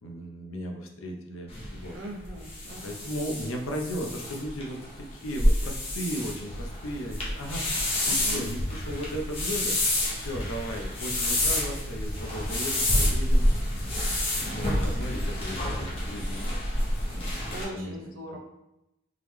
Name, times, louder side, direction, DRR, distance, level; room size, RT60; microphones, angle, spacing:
voice 1, 0.0-2.0 2.8-9.8 10.1-13.5 14.1-16.5 17.1-17.9, equal, 90° left, 2 dB, 0.7 m, -36 dB
sound 1, 1.5-17.6, left 1 dB, 30° left, 0.9 m, -28 dB
voice 2, 1.9-3.0 8.0-8.4 17.5-18.4, right 1 dB, 75° right, -2 dB, 0.7 m, -40 dB
3.8 x 3.2 x 3.1 m, 0.90 s
head